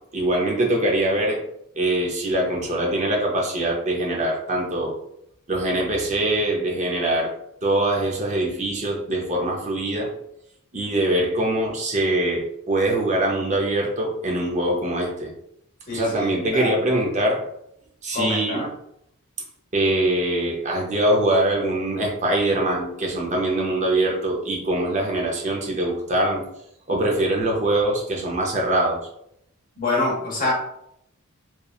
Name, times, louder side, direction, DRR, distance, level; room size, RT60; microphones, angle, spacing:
voice 1, 0.1-1.4 1.7-5.0 5.5-7.3 7.6-10.1 10.7-15.3 15.9-17.4 18.0-18.6 19.7-26.4 26.9-29.0, right 1 dB, 35° right, 0 dB, 0.5 m, -23 dB
voice 2, 15.9-16.7 18.1-18.7 29.8-30.5, left 2 dB, 40° left, -3 dB, 0.9 m, -26 dB
2.9 x 2.2 x 2.3 m, 0.75 s
head